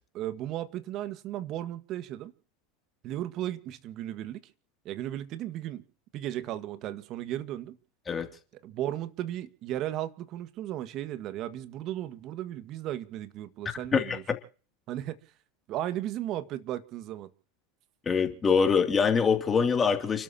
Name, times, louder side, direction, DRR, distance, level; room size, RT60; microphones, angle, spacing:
voice 1, 0.1-2.3 3.0-4.4 4.8-5.8 6.1-7.8 8.6-14.2 14.9-15.2 15.7-17.3, right 13 dB, 50° right, 1.7 m, -35 dB
voice 2, 18.1-20.2, left 6 dB, 25° left, 2.7 m, -24 dB
30.0 x 12.5 x 2.9 m
hypercardioid pair, 90°, 0 cm